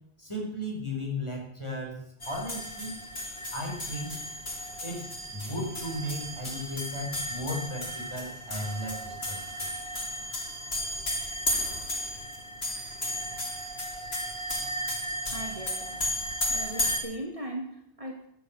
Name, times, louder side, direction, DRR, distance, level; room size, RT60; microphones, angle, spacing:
voice 1, 0.2-2.9 3.5-4.1 4.8-9.7, left 1 dB, 30° left, -2 dB, 4.9 m, -35 dB
sound 1, 2.2-17.0, left 1 dB, 80° left, 3.1 m, -34 dB
voice 2, 15.3-16.1 16.5-18.3, right 1 dB, 35° right, 0 dB, 2.5 m, -39 dB
15.0 x 9.5 x 6.6 m, 0.74 s
omnidirectional pair, 1.0 m